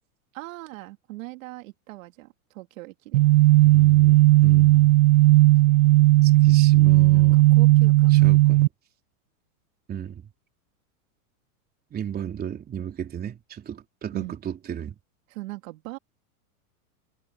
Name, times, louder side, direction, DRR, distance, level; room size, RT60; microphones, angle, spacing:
voice 1, 0.3-3.2 7.1-8.5 14.1-14.4 15.3-16.0, right 20 dB, 60° right, 2.9 m, -40 dB
sound 1, 3.1-8.7, right 19 dB, 90° right, 0.5 m, -16 dB
voice 2, 3.6-4.9 6.2-7.4 8.1-8.7 9.9-10.2 11.9-15.0, right 9 dB, 20° right, 3.8 m, -35 dB
supercardioid pair, 145°, 45 cm